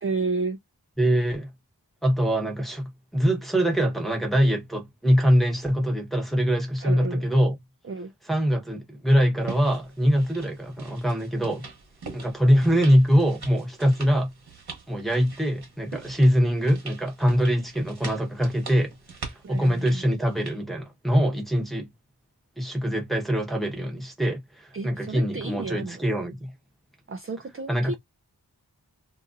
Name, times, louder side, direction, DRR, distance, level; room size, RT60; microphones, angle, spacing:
voice 1, 0.0-0.6 6.8-7.2 7.8-8.1 19.4-20.1 24.7-26.0 27.1-27.9, right 3 dB, 35° right, 0.5 m, -31 dB
voice 2, 1.0-1.5 2.0-7.6 8.3-11.6 12.1-14.3 14.9-18.9 19.5-21.9 22.6-26.5 27.7-27.9, equal, ahead, 1.0 m, -23 dB
sound 1, 9.4-20.6, right 4 dB, 70° right, 1.1 m, -43 dB
2.8 x 2.5 x 2.5 m
wide cardioid pair, 55°, 39 cm